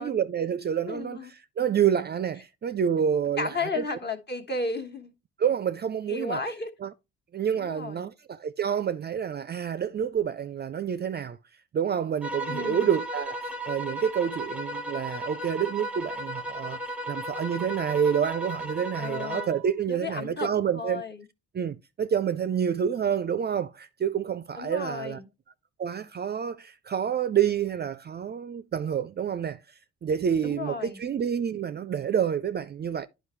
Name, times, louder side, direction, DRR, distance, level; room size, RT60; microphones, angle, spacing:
voice 1, 0.0-3.8 5.4-6.4 6.8-6.9 7.3-11.4 11.7-16.8 17.1-21.0 21.5-25.2 25.8-29.6 30.0-33.1, right 8 dB, 35° right, 0.4 m, -28 dB
voice 2, 0.8-1.3 3.4-5.1 6.1-6.7 7.5-8.1 12.5-12.9 19.0-19.5 19.9-20.5 20.7-21.2 24.6-25.3 30.4-31.0, left 3 dB, 35° left, 1.4 m, -33 dB
sound 1, 12.2-19.7, right 1 dB, 5° right, 0.9 m, -35 dB
9.6 x 5.2 x 3.1 m
cardioid pair, 90°, 30 cm